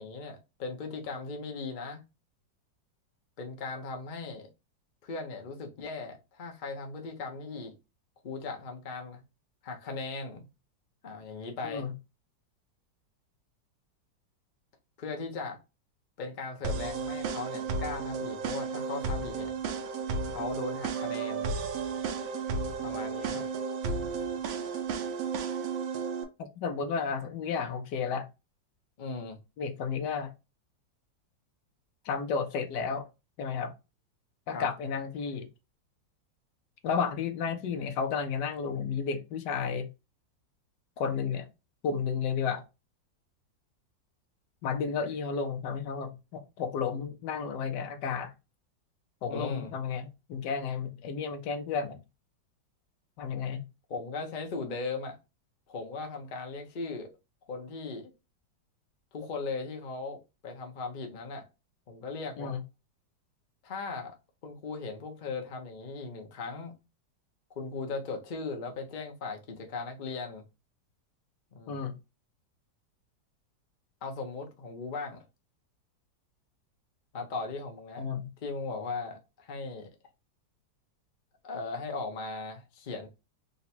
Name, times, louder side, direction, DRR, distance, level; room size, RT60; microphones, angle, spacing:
voice 1, 0.0-2.0 3.4-4.5 5.0-7.7 8.2-9.2 9.6-10.4 11.0-11.9 15.0-15.6 16.2-19.5 20.2-21.5 22.8-23.4 29.0-29.4 34.5-34.7 49.3-49.7 53.9-55.2 55.7-57.1 57.5-58.1 59.1-61.5 61.9-62.5 63.6-64.2 64.4-66.7 67.6-70.4 71.5-71.8 74.0-75.2 77.1-78.1 78.4-79.9 81.4-83.1, left 3 dB, 50° left, 0.5 m, -38 dB
voice 2, 11.6-11.9 26.4-28.3 29.6-30.3 32.0-33.1 33.4-33.7 34.5-35.5 36.8-39.9 41.0-41.5 41.8-42.6 44.6-48.3 49.2-52.0 53.2-53.6 62.4-62.6 71.7-71.9 78.0-78.3, left 6 dB, 75° left, 1.2 m, -32 dB
sound 1, 16.6-26.2, right 5 dB, 85° right, 1.4 m, -33 dB
3.8 x 2.2 x 4.2 m
omnidirectional pair, 2.0 m